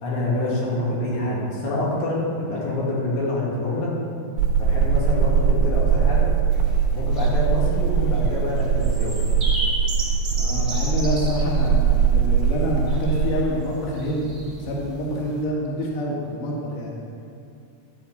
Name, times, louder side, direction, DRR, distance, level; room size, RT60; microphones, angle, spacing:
voice 1, 0.0-3.9 4.6-6.3 6.9-9.2, left 2 dB, 85° left, -6 dB, 4.5 m, -26 dB
sound 1, 4.4-13.4, right 6 dB, 80° right, 2.4 m, -21 dB
sound 2, 6.5-15.4, right 2 dB, 45° right, 0.5 m, -35 dB
voice 2, 10.3-16.9, equal, 60° left, -3 dB, 2.8 m, -27 dB
13.0 x 4.5 x 8.2 m, 2.5 s
omnidirectional pair, 4.7 m